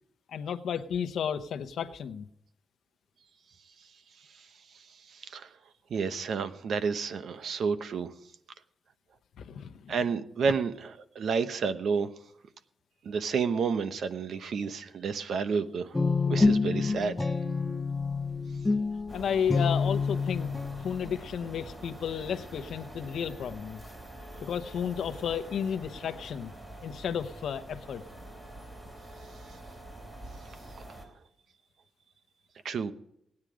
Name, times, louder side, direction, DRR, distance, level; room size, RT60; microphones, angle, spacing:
voice 1, 0.3-2.3 9.4-9.9 19.1-20.5 20.8-23.8 24.4-26.5 26.8-28.0, left 8 dB, 80° left, 10 dB, 0.9 m, -33 dB
voice 2, 4.7-5.5 5.9-8.1 9.9-12.1 13.0-16.0 16.3-17.3 32.6-32.9, right 5 dB, 70° right, 11 dB, 0.9 m, -30 dB
Guitar, 15.9-21.1, left 4 dB, 15° left, 1.0 m, -28 dB
sound 1, 19.1-31.1, right 1 dB, 15° right, 3.5 m, -46 dB
17.5 x 9.8 x 5.0 m, 0.76 s
wide cardioid pair, 125°, 0 cm